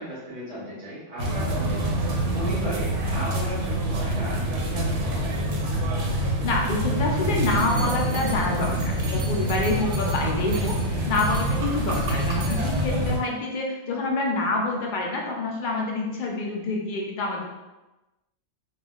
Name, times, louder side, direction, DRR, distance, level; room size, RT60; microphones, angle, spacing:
voice 1, 0.0-5.5, equal, 40° right, -10 dB, 0.7 m, -36 dB
sound 1, 1.2-13.2, right 1 dB, 85° right, 0.9 m, -26 dB
voice 2, 6.4-17.5, left 3 dB, 60° left, 0 dB, 0.5 m, -27 dB
2.3 x 2.3 x 3.6 m, 1.1 s
omnidirectional pair, 1.2 m